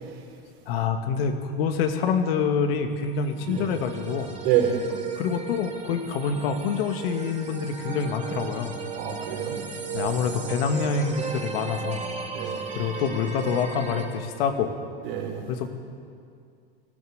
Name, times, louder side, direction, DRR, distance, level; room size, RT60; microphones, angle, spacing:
voice 1, 0.7-4.4 5.2-8.7 9.9-12.0 12.7-14.7 15.5-15.7, left 6 dB, 65° left, 6 dB, 2.4 m, -26 dB
sound 1, 3.0-14.1, right 5 dB, 25° right, 3.7 m, -36 dB
voice 2, 4.4-4.8 8.9-9.6 9.9-10.1 12.3-12.6 15.0-15.4, right 10 dB, 70° right, 1 dB, 5.0 m, -27 dB
19.5 x 14.5 x 9.8 m, 2.3 s
hypercardioid pair, 100°, 32 cm